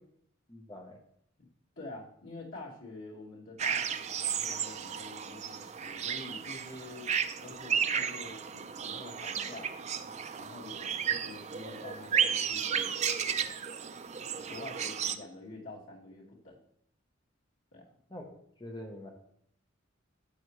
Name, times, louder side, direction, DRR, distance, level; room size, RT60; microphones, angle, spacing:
voice 1, 0.5-1.0 18.1-19.1, left 1 dB, 20° left, 2 dB, 1.0 m, -45 dB
voice 2, 1.8-7.1 7.4-9.7 10.4-13.1 14.5-16.6 17.7-17.9, left 2 dB, 80° left, -5 dB, 2.9 m, -47 dB
sound 1, 3.6-15.2, right 7 dB, 35° right, 0.5 m, -33 dB
12.0 x 7.3 x 3.2 m, 0.70 s
head